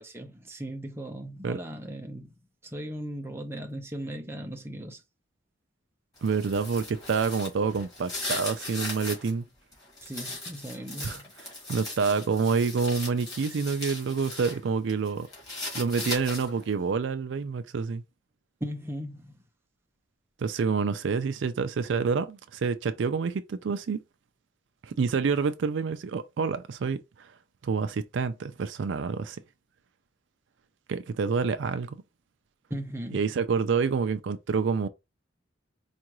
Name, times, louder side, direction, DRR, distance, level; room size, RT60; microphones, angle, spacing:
voice 1, 0.0-2.3 2.6-5.0 10.0-11.3 18.6-19.3 32.7-33.2, equal, 10° right, 0.6 m, -37 dB
sound 1, 6.2-9.3 9.7-14.6 14.9-16.7, left 2 dB, 20° left, 2.0 m, -38 dB
voice 2, 6.2-9.4 11.0-11.2 11.7-15.3 15.7-18.0 20.4-24.0 24.8-27.0 27.6-29.4 30.9-32.0 33.1-34.9, right 5 dB, 65° right, 0.4 m, -27 dB
4.6 x 2.5 x 3.0 m
head